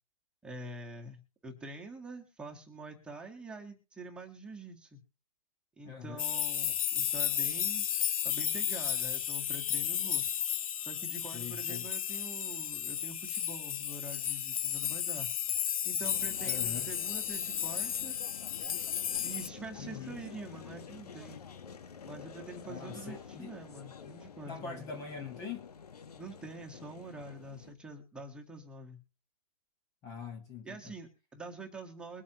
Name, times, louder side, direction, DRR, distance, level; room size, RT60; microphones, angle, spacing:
voice 1, 0.4-5.0 5.8-7.9 8.2-10.2 10.9-15.3 15.8-18.1 19.2-21.4 22.0-24.8 26.2-29.0 30.6-32.2, right 2 dB, 5° right, 1.7 m, -46 dB
voice 2, 5.8-6.2 11.3-11.9 16.5-16.9 19.8-20.2 22.6-23.5 24.5-25.7 30.0-30.8, left 5 dB, 20° left, 1.4 m, -43 dB
sound 1, 6.2-19.5, left 9 dB, 65° left, 0.6 m, -33 dB
sound 2, 16.0-27.7, left 7 dB, 80° left, 1.4 m, -49 dB
22.5 x 8.4 x 3.0 m
hypercardioid pair, 155°, 19 cm